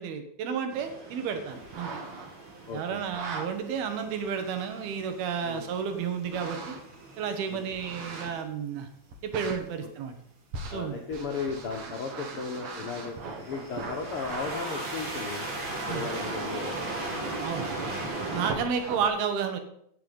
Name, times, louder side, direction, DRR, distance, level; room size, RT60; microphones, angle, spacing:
voice 1, 0.0-1.9 2.7-6.8 7.2-8.9 9.2-10.1 10.7-11.0 15.9-16.0 17.4-17.7 18.3-19.6, right 6 dB, 85° right, 7 dB, 3.3 m, -31 dB
sound 1, 0.7-8.4 12.3-12.8 13.2-18.5, right 2 dB, 35° right, 2.6 m, -38 dB
sound 2, 1.6-2.5 3.0-3.5 4.2-4.3 6.2-7.0 7.7-8.5 9.1-9.6 10.5-14.6 16.9-17.0 17.3-19.1, right 4 dB, 50° right, 2.5 m, -39 dB
voice 2, 2.6-3.0 5.4-5.7 7.5-7.6 9.8-9.9 10.7-15.5 15.9-16.7 18.3-18.5, left 5 dB, 70° left, 1 dB, 1.3 m, -36 dB
16.0 x 7.0 x 5.4 m, 0.70 s
omnidirectional pair, 4.3 m